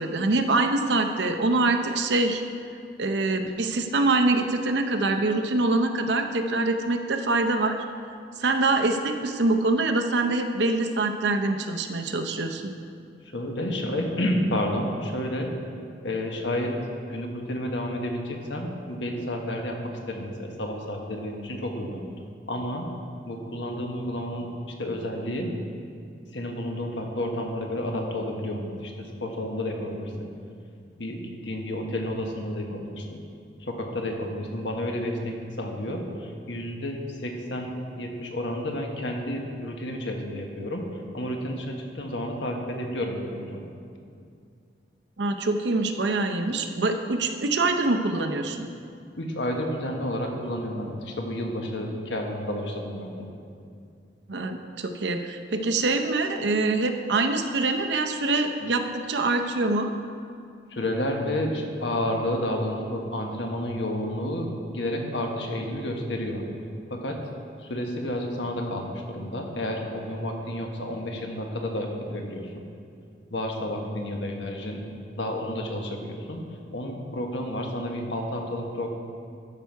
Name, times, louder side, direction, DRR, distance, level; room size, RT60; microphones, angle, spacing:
voice 1, 0.0-2.4 3.0-7.8 8.4-12.7 45.2-48.7 54.3-59.9, right 2 dB, 70° right, 5 dB, 0.7 m, -24 dB
voice 2, 13.3-15.5 16.0-16.7 17.1-22.0 22.5-22.9 23.3-24.5 24.8-25.5 26.3-30.3 31.0-33.2 33.6-40.8 41.1-43.7 49.2-53.3 60.7-66.4 66.9-67.2 67.6-72.6 73.3-74.8 75.2-76.4 76.7-78.9, left 1 dB, 80° left, 2 dB, 1.3 m, -30 dB
12.5 x 5.8 x 4.7 m, 2.4 s
head